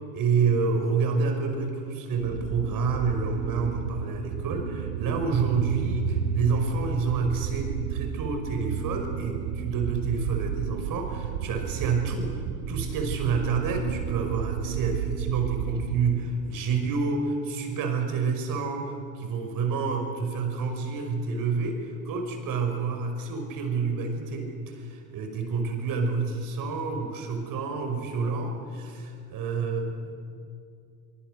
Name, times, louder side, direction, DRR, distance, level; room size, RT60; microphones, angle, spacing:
voice 1, 0.1-30.1, right 4 dB, 45° right, 5 dB, 5.6 m, -28 dB
sound 1, 2.2-16.3, right 8 dB, 75° right, 2.0 m, -32 dB
24.5 x 24.5 x 6.7 m, 2.4 s
hypercardioid pair, 90°, 45 cm